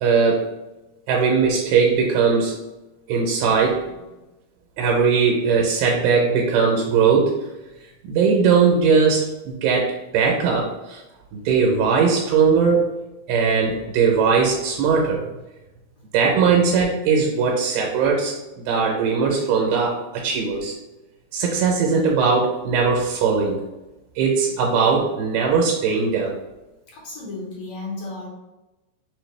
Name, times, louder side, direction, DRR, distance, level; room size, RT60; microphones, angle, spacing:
voice 1, 0.0-0.4 1.1-2.6 3.1-3.8 4.8-7.3 8.1-11.0 11.3-13.0 13.3-15.2 16.1-20.7 21.3-23.6 24.2-26.4, right 5 dB, 80° right, 0 dB, 2.6 m, -19 dB
voice 2, 26.9-28.3, left 2 dB, 80° left, -4 dB, 1.5 m, -33 dB
6.2 x 2.7 x 3.2 m, 1.0 s
omnidirectional pair, 4.6 m